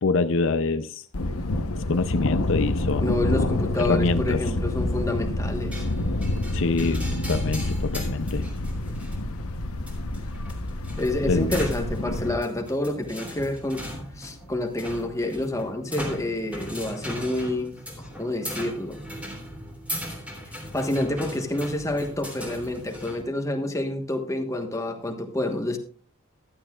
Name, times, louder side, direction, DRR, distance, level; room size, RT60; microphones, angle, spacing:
voice 1, 0.0-1.0 1.9-3.2 3.8-4.4 6.5-8.5 11.3-11.5, left 3 dB, 60° left, 0.5 m, -25 dB
Thunder, 1.1-12.3, left 1 dB, 80° left, 1.0 m, -28 dB
voice 2, 3.0-5.8 11.0-13.9 14.2-19.0 20.7-25.8, left 1 dB, 15° left, 1.3 m, -28 dB
sound 1, 5.7-23.2, equal, 5° right, 2.9 m, -38 dB
15.5 x 12.0 x 2.4 m
head